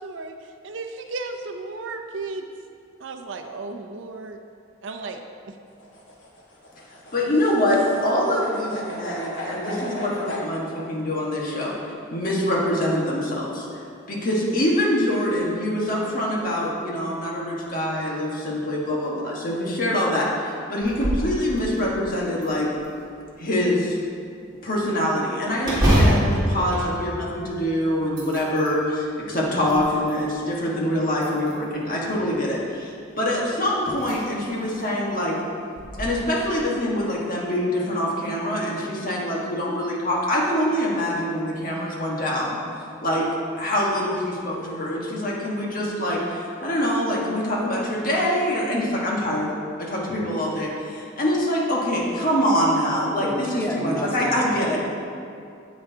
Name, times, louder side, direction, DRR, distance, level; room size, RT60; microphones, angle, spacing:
voice 1, 0.0-2.5 3.0-4.4 4.8-5.6, right 3 dB, 75° right, 5 dB, 0.6 m, -34 dB
sound 1, 5.7-10.4, left 1 dB, 70° left, 1.5 m, -35 dB
voice 2, 7.1-11.7 12.1-13.7 14.1-22.7 23.4-24.0 24.6-35.3 36.0-42.6 43.0-43.3 43.6-49.5 49.8-54.8, left 1 dB, 45° left, -4 dB, 1.5 m, -24 dB
sound 2, 20.8-21.3 21.8-21.9 22.4-23.2 25.6-27.6 28.0-28.8 29.4-30.3 31.2-31.8 33.3-33.4 33.9-34.2 34.6-34.7 35.8-36.0, equal, 20° right, 2.0 m, -24 dB
voice 3, 53.2-54.4 54.7-54.8, equal, 10° left, -1 dB, 0.7 m, -29 dB
9.4 x 7.8 x 2.8 m, 2.5 s
head